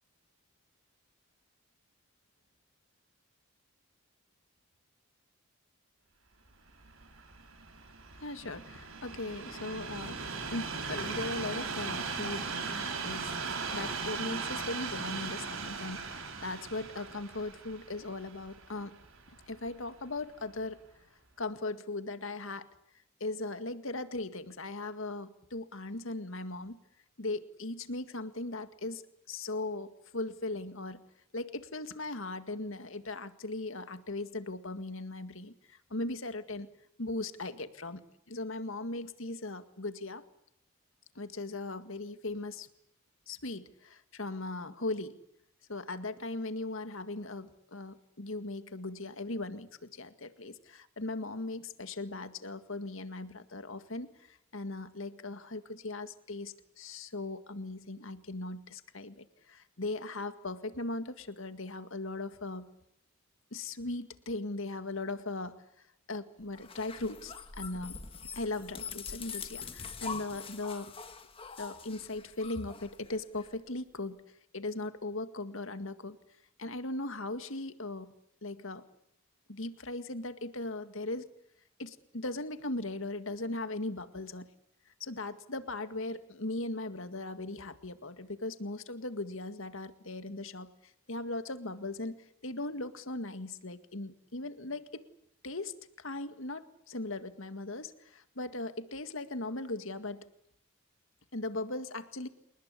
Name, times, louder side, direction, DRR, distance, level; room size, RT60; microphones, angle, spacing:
Train, 6.7-19.9 20.6-20.7, right 4 dB, 70° right, 4.8 m, -39 dB
voice 1, 8.2-10.2 10.5-13.4 13.7-19.0 19.5-20.8 21.4-22.7 23.2-26.8 27.2-29.0 29.3-31.0 31.3-36.7 37.0-40.2 41.2-42.7 43.3-45.2 45.7-62.7 63.5-65.7 66.1-67.9 68.4-71.0 71.6-74.2 74.5-76.2 76.6-78.1 78.4-78.9 79.5-81.3 81.8-84.5 85.0-90.7 91.1-95.1 95.4-100.3 101.3-102.3, left 2 dB, 65° left, 10 dB, 2.0 m, -38 dB
sound 1, 66.5-73.5, left 5 dB, 25° left, 1.8 m, -44 dB
29.0 x 19.5 x 8.4 m, 0.74 s
head